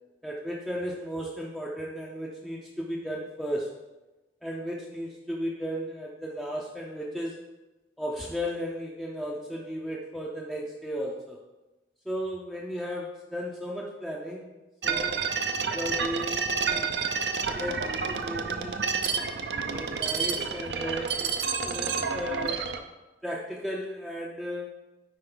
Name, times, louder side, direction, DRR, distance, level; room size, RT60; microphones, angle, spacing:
voice 1, 0.2-3.7 4.4-7.4 8.0-11.4 12.1-14.5 14.8-15.2 15.7-16.9 17.6-18.9 19.7-22.7 23.2-24.8, equal, ahead, -3 dB, 0.6 m, -35 dB
sound 1, 14.8-22.8, right 5 dB, 70° right, 0.6 m, -29 dB
9.9 x 4.3 x 3.9 m, 1.1 s
head